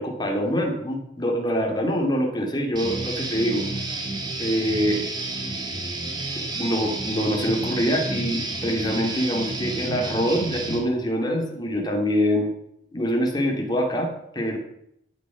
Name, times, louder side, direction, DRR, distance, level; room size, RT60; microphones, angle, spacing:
voice 1, 0.0-3.7 4.4-5.1 6.3-12.5 12.9-14.6, equal, 20° left, 1 dB, 2.6 m, -25 dB
Guitar, 2.7-10.8, right 2 dB, 20° right, 2.2 m, -30 dB
13.5 x 8.8 x 6.1 m, 0.75 s
head